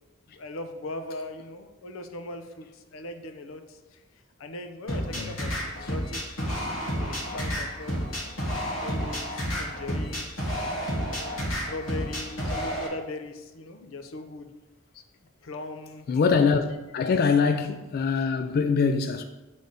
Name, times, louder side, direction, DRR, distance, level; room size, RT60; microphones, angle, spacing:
voice 1, 0.3-4.0 4.4-8.0 8.8-14.5 15.4-16.1, left 2 dB, 90° left, 0.6 m, -40 dB
sound 1, 4.9-12.9, equal, 75° left, 1.4 m, -30 dB
voice 2, 16.1-19.2, left 5 dB, 50° left, 0.3 m, -23 dB
8.0 x 3.4 x 4.0 m
head